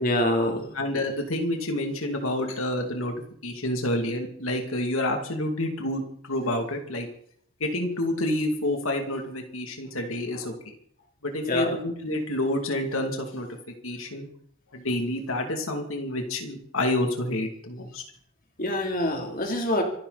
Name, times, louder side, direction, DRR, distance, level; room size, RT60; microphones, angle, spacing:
voice 1, 0.0-0.7 11.4-11.8 18.6-19.8, left 1 dB, 45° left, 2 dB, 3.2 m, -25 dB
voice 2, 0.7-3.1 3.4-7.1 7.6-10.5 11.2-13.5 13.8-14.3 14.7-18.0, left 1 dB, 85° left, 3 dB, 2.6 m, -28 dB
25.5 x 12.0 x 4.2 m, 0.62 s
head